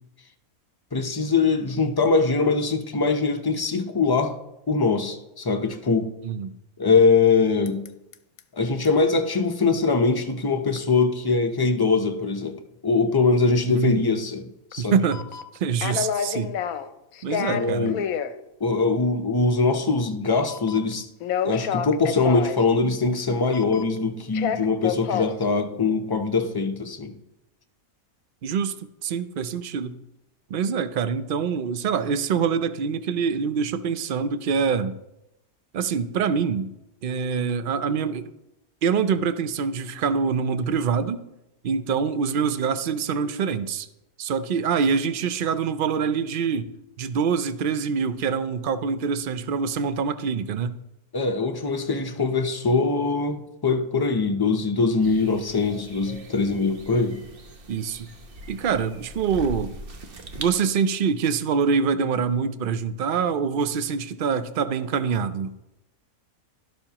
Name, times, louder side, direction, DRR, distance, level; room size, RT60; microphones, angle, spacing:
voice 1, 0.9-4.4 4.7-6.1 6.8-7.8 8.5-12.6 12.8-15.0 17.5-18.1 18.6-21.1 21.4-27.1 51.1-57.2, left 4 dB, 30° left, 0.4 m, -22 dB
voice 2, 6.2-6.5 13.6-14.0 14.8-15.2 15.6-16.5 17.2-17.9 28.4-28.7 29.0-30.0 30.5-34.9 35.7-36.7 37.0-38.3 38.8-41.2 41.6-43.9 44.2-46.7 47.0-50.8 57.7-58.1 58.5-59.7 60.4-65.5, right 6 dB, 65° right, 0.5 m, -25 dB
sound 1, 7.7-7.9 8.1-8.4 8.8-8.9 10.8-10.9 14.7-14.8 15.1-16.9 17.1-18.3 20.5-20.9 21.2-22.6 23.5-24.0 24.3-25.4, left 8 dB, 75° left, 1.1 m, -28 dB
sound 2, 55.0-60.6, right 1 dB, 45° right, 1.1 m, -41 dB
12.5 x 12.0 x 2.9 m
omnidirectional pair, 1.6 m